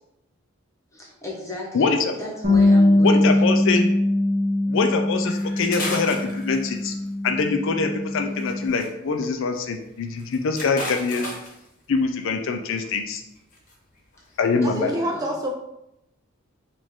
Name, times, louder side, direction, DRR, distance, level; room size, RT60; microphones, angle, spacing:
voice 1, 0.9-3.5 14.6-15.3, left 1 dB, 15° left, -4 dB, 1.1 m, -34 dB
voice 2, 1.7-2.1 3.0-3.9 4.7-6.9 7.2-11.3 11.9-13.2 14.4-14.9, left 4 dB, 65° left, 5 dB, 0.4 m, -24 dB
Bass guitar, 2.4-8.7, left 1 dB, 40° right, 1.3 m, -21 dB
sound 1, 5.2-7.0 8.4-8.9 9.2-9.3 9.6-9.7 10.1-11.7 12.6-12.9 13.4-13.7 14.1-14.4, left 1 dB, 40° left, 1.0 m, -34 dB
voice 3, 14.6-15.6, equal, 20° right, 2 dB, 0.3 m, -27 dB
4.9 x 2.5 x 3.6 m, 0.85 s
head